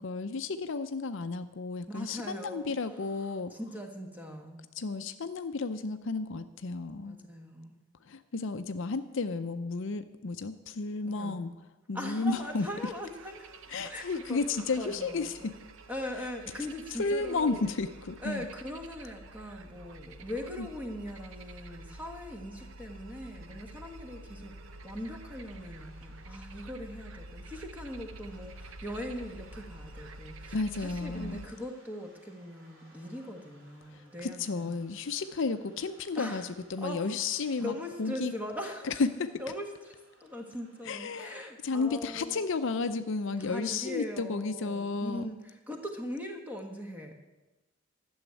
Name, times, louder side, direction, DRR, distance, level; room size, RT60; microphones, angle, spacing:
voice 1, 0.0-3.5 4.8-7.2 8.1-11.5 11.9-12.7 13.7-15.5 17.0-18.5 20.6-20.7 30.5-31.5 33.9-38.3 38.8-39.4 40.8-45.3, left 4 dB, 60° left, 10 dB, 0.5 m, -33 dB
voice 2, 1.9-2.7 3.5-4.6 7.0-7.7 11.0-11.4 11.9-13.5 13.8-15.5 15.9-17.7 18.2-34.8 36.2-36.5 36.8-37.0 37.6-38.9 39.4-42.4 43.4-47.1, left 1 dB, 10° right, 2 dB, 1.5 m, -40 dB
sound 1, 12.3-31.5, right 2 dB, 60° right, 0.8 m, -48 dB
sound 2, 23.8-41.6, right 1 dB, 45° right, 4.6 m, -63 dB
12.5 x 7.2 x 9.1 m, 1.1 s
head